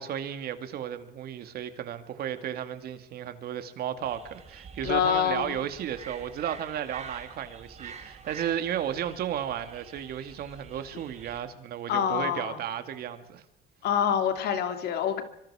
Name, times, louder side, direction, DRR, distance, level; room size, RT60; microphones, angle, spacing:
voice 1, 0.0-13.4, right 10 dB, 65° right, 2.2 m, -34 dB
sound 1, 4.0-11.4, right 6 dB, 40° right, 4.0 m, -46 dB
voice 2, 4.8-5.6 11.9-12.6 13.8-15.2, left 9 dB, 75° left, 3.0 m, -26 dB
25.0 x 24.5 x 4.9 m
cardioid pair, 110°, 17 cm